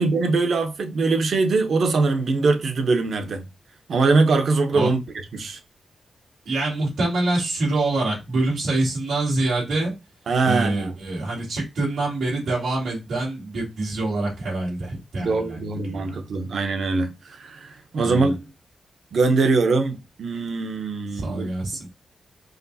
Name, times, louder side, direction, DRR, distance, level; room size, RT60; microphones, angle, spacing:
voice 1, 0.0-3.4 3.9-5.0 5.3-5.6 10.3-10.9 15.2-18.4 19.1-21.5, right 3 dB, 60° right, 0.8 m, -22 dB
voice 2, 6.5-9.9 10.4-16.2 18.0-18.3 21.1-21.8, right 2 dB, 90° right, 2.6 m, -25 dB
5.0 x 3.0 x 2.7 m
wide cardioid pair, 145°, 0 cm